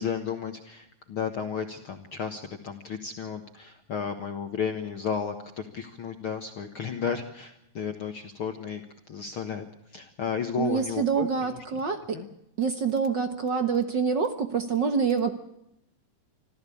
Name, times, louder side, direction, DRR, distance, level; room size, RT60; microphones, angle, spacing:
voice 1, 0.0-8.8 9.1-9.7 9.9-11.3 12.1-12.3, left 6 dB, 50° left, 6 dB, 1.9 m, -33 dB
voice 2, 10.6-12.2 12.6-15.3, right 6 dB, 50° right, 8 dB, 1.4 m, -26 dB
26.0 x 15.0 x 8.5 m, 0.81 s
omnidirectional pair, 3.5 m